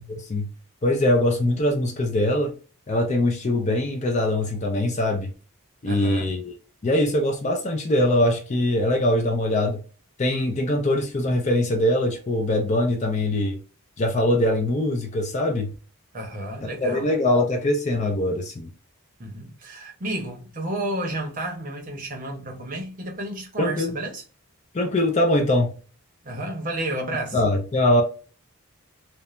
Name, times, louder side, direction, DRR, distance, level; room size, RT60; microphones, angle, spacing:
voice 1, 0.8-2.5 2.9-5.3 5.8-6.5 6.8-9.8 10.2-13.6 14.0-15.7 16.6-18.7 23.6-24.0 24.7-25.8 27.3-28.0, left 1 dB, 30° left, 0.4 m, -22 dB
voice 2, 5.9-6.3 16.1-17.1 19.2-24.2 26.2-27.4, right 1 dB, 35° right, 0.7 m, -31 dB
3.0 x 2.1 x 2.3 m
head